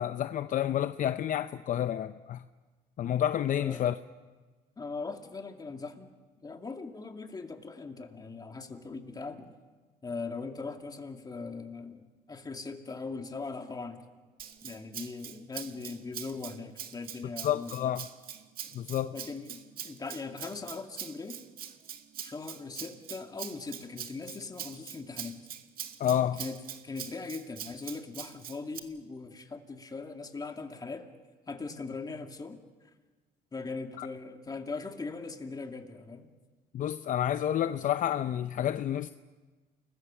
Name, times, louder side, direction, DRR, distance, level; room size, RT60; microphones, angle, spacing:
voice 1, 0.0-2.4 3.0-3.9 17.4-18.1 18.7-19.1 26.0-26.4 34.0-34.1 36.7-39.1, left 10 dB, 50° left, 0.7 m, -29 dB
voice 2, 4.8-6.1 6.4-9.5 10.0-14.0 14.6-18.0 19.1-21.4 22.2-25.4 26.4-26.6 26.8-31.1 31.5-32.6 33.5-36.3, left 4 dB, 25° left, 2.4 m, -40 dB
Rattle (instrument), 14.4-28.8, right 9 dB, 60° right, 1.8 m, -43 dB
29.5 x 21.0 x 7.2 m
cardioid pair, 110°, 17 cm